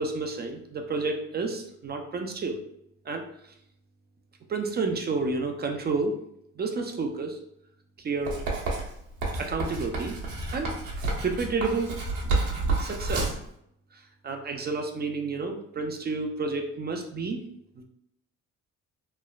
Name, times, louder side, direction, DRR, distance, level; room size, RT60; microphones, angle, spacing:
voice 1, 0.0-2.6 3.1-3.5 4.5-6.2 6.6-7.4 8.0-8.4 9.4-10.2 10.5-10.7 11.2-11.9 12.8-13.4 13.9-17.4 17.8-17.9, right 3 dB, 35° right, 3 dB, 0.4 m, -30 dB
Writing, 8.3-13.5, right 3 dB, 70° right, 0.9 m, -30 dB
3.1 x 2.0 x 2.3 m, 0.74 s
supercardioid pair, 70°, 30 cm